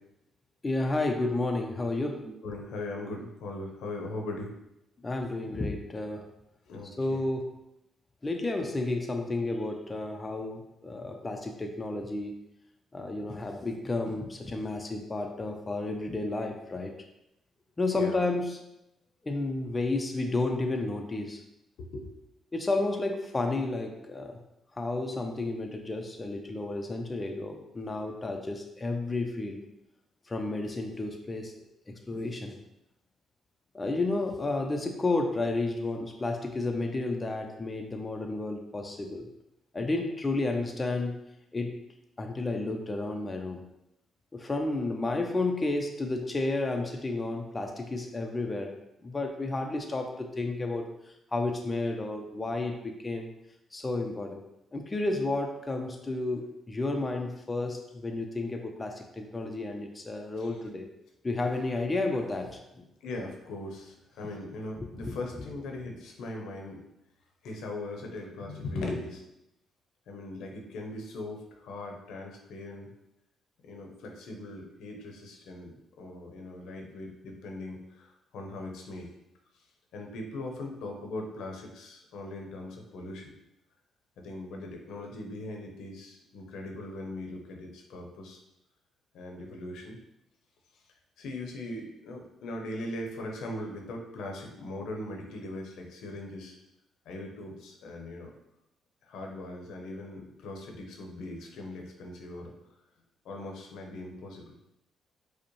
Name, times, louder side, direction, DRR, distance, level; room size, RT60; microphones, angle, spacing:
voice 1, 0.6-2.2 5.0-6.3 7.0-7.5 8.2-12.4 12.9-16.9 17.8-18.6 19.2-21.4 22.5-24.4 24.8-29.6 30.3-31.5 31.9-32.6 33.7-39.3 39.7-41.2 41.5-41.8 42.2-43.6 44.3-48.7 49.0-53.3 53.7-54.4 54.7-60.9 61.2-62.9 64.8-65.2, left 2 dB, 25° left, 3 dB, 0.4 m, -31 dB
voice 2, 2.2-4.5 6.7-7.2 17.9-18.2 21.8-22.1 60.4-60.5 63.0-66.8 67.4-69.3 70.1-72.9 73.6-79.1 79.9-83.3 84.2-88.4 89.1-90.0 90.7-90.8 91.2-96.6 97.0-98.3 99.0-102.5 103.2-104.5, left 2 dB, 80° left, 2 dB, 0.7 m, -40 dB
5.0 x 2.1 x 3.0 m, 0.84 s
cardioid pair, 90°, 0 cm